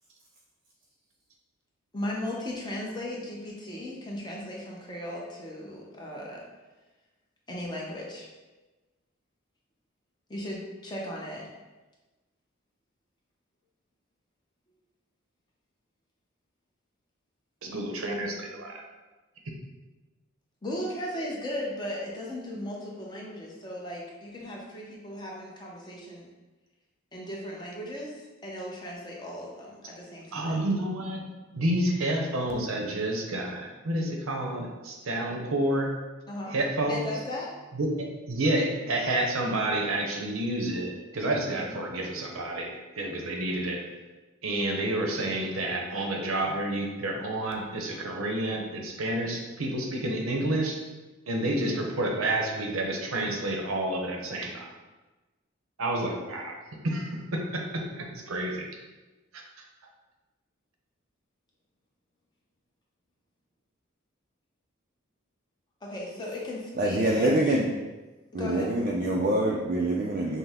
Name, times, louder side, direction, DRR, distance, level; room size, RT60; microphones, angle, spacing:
voice 1, 1.9-6.4 7.5-8.3 10.3-11.5 20.6-26.3 27.1-30.6 36.3-36.5 36.9-37.5 41.6-41.7 51.4-51.6 65.8-67.5 68.3-68.8, left 1 dB, 20° left, -3 dB, 0.7 m, -37 dB
voice 2, 17.6-18.8 30.3-31.2 31.5-35.9 36.5-37.1 37.7-43.8 44.4-50.8 51.3-54.7 55.8-56.6 56.8-58.7, right 1 dB, 85° right, 1 dB, 0.7 m, -29 dB
voice 3, 66.8-67.7 68.3-70.4, right 1 dB, 40° right, -3 dB, 0.4 m, -25 dB
5.5 x 2.0 x 3.5 m, 1.2 s
head